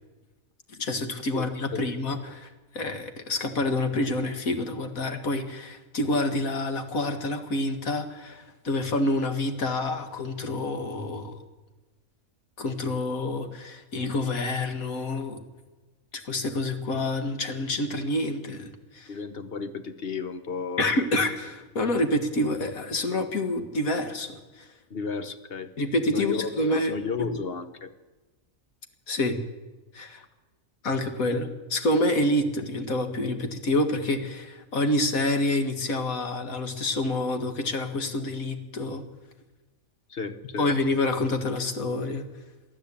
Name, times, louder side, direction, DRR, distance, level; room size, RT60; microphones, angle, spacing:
voice 1, 0.8-2.5 2.7-11.3 12.6-15.4 16.3-19.1 20.8-24.6 25.8-26.9 27.3-27.4 29.1-29.4 29.9-30.3 30.8-39.0 40.6-42.2, left 1 dB, 80° left, 7 dB, 2.2 m, -27 dB
voice 2, 19.1-20.9 24.9-25.7 26.1-27.9 40.1-40.7, left 4 dB, 45° left, 10 dB, 1.3 m, -33 dB
23.0 x 13.5 x 8.6 m, 1.2 s
omnidirectional pair, 1.4 m